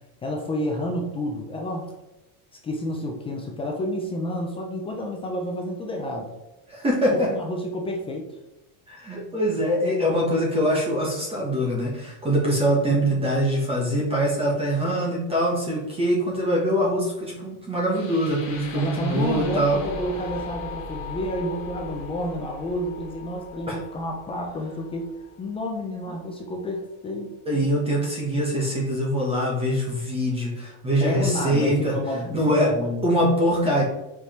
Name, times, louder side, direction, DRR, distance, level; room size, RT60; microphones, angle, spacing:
voice 1, 0.2-1.9 2.6-6.3 7.1-8.2 12.8-13.2 18.7-25.1 25.4-27.6 31.0-33.0, left 1 dB, 15° left, 1 dB, 0.4 m, -30 dB
voice 2, 6.7-7.3 8.9-19.8 23.7-23.8 27.4-31.9 32.3-32.7 33.0-33.8, equal, 15° right, -4 dB, 1.3 m, -23 dB
sound 1, 17.9-25.9, left 3 dB, 50° left, 1.8 m, -38 dB
5.2 x 4.9 x 4.3 m, 0.95 s
cardioid pair, 170°, 43 cm